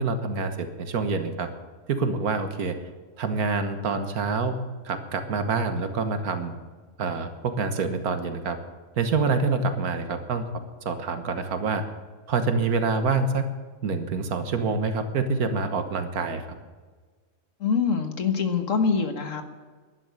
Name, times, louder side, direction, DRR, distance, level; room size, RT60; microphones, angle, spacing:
voice 1, 0.0-1.5 1.9-2.8 3.2-4.6 4.9-6.5 7.0-8.6 9.0-10.5 10.9-11.9 12.3-13.5 13.8-16.4, right 4 dB, 85° right, 8 dB, 1.7 m, -26 dB
voice 2, 17.6-19.4, left 5 dB, 60° left, 7 dB, 1.7 m, -24 dB
11.5 x 11.0 x 8.3 m, 1.4 s
omnidirectional pair, 1.5 m